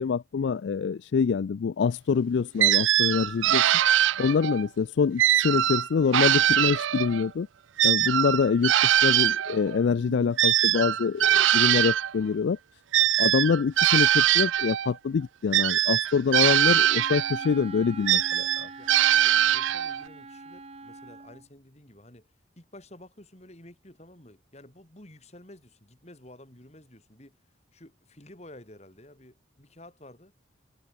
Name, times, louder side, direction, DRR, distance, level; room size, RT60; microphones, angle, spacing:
voice 1, 0.0-3.6 4.2-7.5 7.8-12.6 13.2-18.7, left 5 dB, 70° left, 0.4 m, -25 dB
sound 1, 2.6-4.6 5.2-7.3 7.8-12.1 12.9-14.9 15.5-17.5 18.1-20.0, right 12 dB, 90° right, 0.4 m, -22 dB
Wind instrument woodwind instrument, 16.6-21.5, right 2 dB, 35° right, 1.7 m, -44 dB
voice 2, 18.8-27.4 27.7-30.3, left 1 dB, 35° left, 3.6 m, -51 dB
head